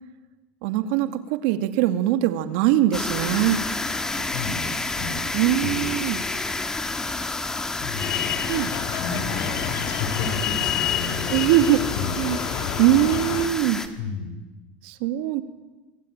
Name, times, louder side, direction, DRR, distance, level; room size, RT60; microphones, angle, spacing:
voice 1, 0.6-3.6 4.0-4.3 5.3-6.2 8.5-8.7 11.3-11.8 12.2-12.4 12.8-13.8 14.8-15.4, right 13 dB, 70° right, 9 dB, 2.4 m, -22 dB
sound 1, 2.9-13.9, left 2 dB, 10° left, 2.0 m, -30 dB
voice 2, 4.3-5.2 5.6-5.9 7.8-8.4 8.7-11.5 11.9-12.2 14.0-14.3, left 4 dB, 70° left, 10 dB, 4.9 m, -33 dB
sound 2, 8.0-13.5, left 11 dB, 50° left, 2.0 m, -29 dB
25.5 x 25.5 x 8.9 m, 1.2 s
supercardioid pair, 145°, 6 cm